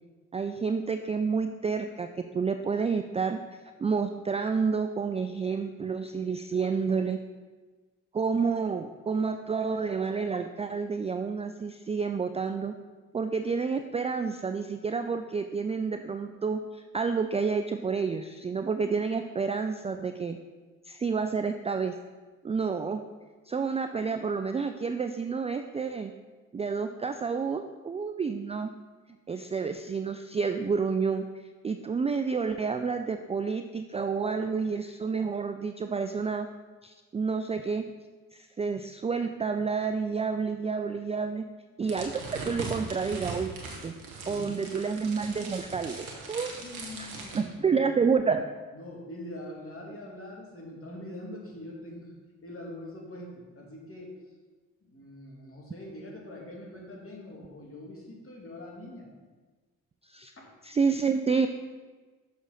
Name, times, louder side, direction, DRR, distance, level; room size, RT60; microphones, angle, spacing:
voice 1, 0.3-3.4 3.8-7.2 8.1-12.7 13.1-20.4 20.9-22.0 22.4-23.0 23.5-26.1 26.5-28.7 29.3-31.2 31.6-36.5 36.8-37.9 38.3-41.5 41.8-43.5 43.8-43.9 44.3-46.6 47.0-47.1 47.3-48.4 60.0-60.3 60.6-61.5, right 5 dB, 15° right, 7 dB, 0.3 m, -29 dB
sound 1, 41.8-47.4, right 3 dB, 85° right, 1.1 m, -40 dB
voice 2, 44.2-44.8 46.6-48.3 48.7-54.2 54.8-59.1 60.4-60.5, left 1 dB, 35° left, -2 dB, 2.4 m, -43 dB
6.3 x 6.2 x 4.0 m, 1.3 s
hypercardioid pair, 40°, 40 cm